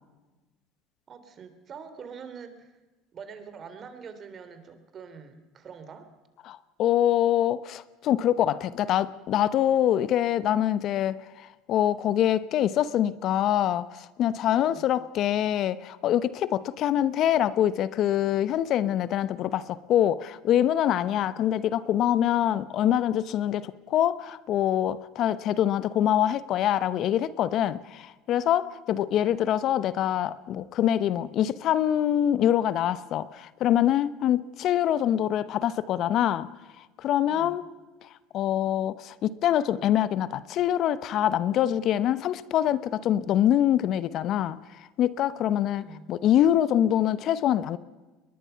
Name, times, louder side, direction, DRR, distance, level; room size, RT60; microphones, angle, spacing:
voice 1, 1.1-2.7 3.1-6.1 14.5-14.9 21.3-21.5 29.0-29.2 29.5-29.8 37.2-37.6 45.6-46.1, right 6 dB, 40° right, 3.4 m, -45 dB
voice 2, 6.5-36.5 36.8-37.6 38.3-44.6 45.0-47.8, left 11 dB, 55° left, 0.9 m, -25 dB
22.5 x 21.0 x 5.8 m
supercardioid pair, 90°, 0 cm